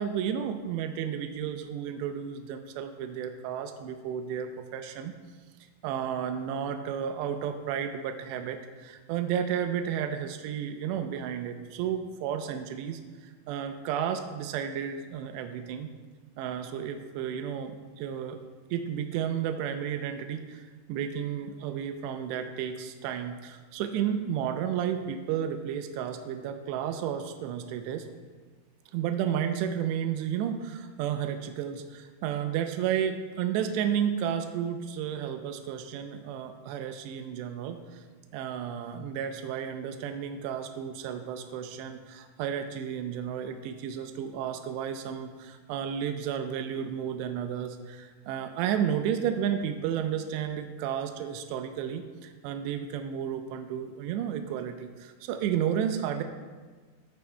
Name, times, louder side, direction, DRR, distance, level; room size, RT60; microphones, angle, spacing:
voice 1, 0.0-5.1 5.8-15.9 16.4-18.4 18.7-28.1 28.9-38.0 38.3-56.2, right 8 dB, 90° right, 6 dB, 2.5 m, -32 dB
15.0 x 13.0 x 2.2 m, 1.4 s
omnidirectional pair, 5.6 m